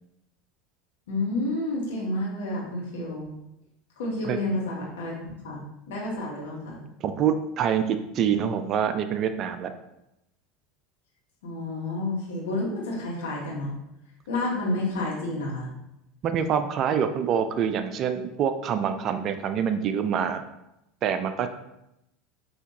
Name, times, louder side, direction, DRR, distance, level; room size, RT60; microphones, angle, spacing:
voice 1, 1.1-3.3 4.0-5.1 5.4-6.8 11.4-13.8 14.3-15.7, left 2 dB, 65° left, -4 dB, 1.3 m, -30 dB
voice 2, 7.0-9.7 16.2-20.4 21.0-21.5, right 8 dB, 40° right, 9 dB, 0.3 m, -26 dB
5.6 x 2.8 x 2.8 m, 0.86 s
figure-of-eight pair, 75°, 0 cm